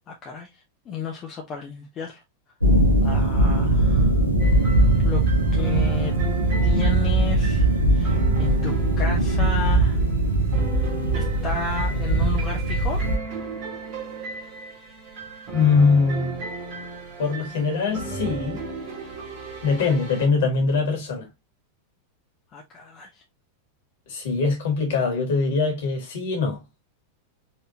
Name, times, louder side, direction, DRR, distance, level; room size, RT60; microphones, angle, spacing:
voice 1, 0.1-0.5 0.9-2.2 3.0-4.3 4.8-5.2 5.5-6.1 6.6-10.1 10.7-13.0 22.5-23.2, left 4 dB, 30° left, 0.9 m, -33 dB
sound 1, 2.6-13.2, right 2 dB, 85° right, 1.0 m, -20 dB
sound 2, 4.4-20.3, right 2 dB, 40° right, 1.9 m, -36 dB
voice 2, 15.5-16.4 17.2-18.6 19.6-21.3 24.1-26.6, left 4 dB, 55° left, 2.0 m, -22 dB
4.5 x 3.3 x 2.8 m
figure-of-eight pair, 90°, 0 cm